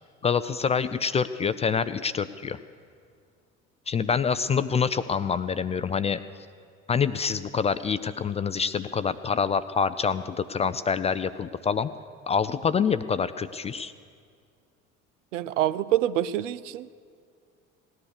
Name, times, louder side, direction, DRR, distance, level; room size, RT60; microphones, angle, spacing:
voice 1, 0.2-2.6 3.9-6.2 6.9-11.9 12.3-13.9, left 6 dB, 20° left, 13 dB, 0.3 m, -26 dB
voice 2, 15.3-16.9, right 12 dB, 70° right, 16 dB, 0.6 m, -26 dB
18.0 x 10.5 x 6.6 m, 2.2 s
figure-of-eight pair, 60°, 39 cm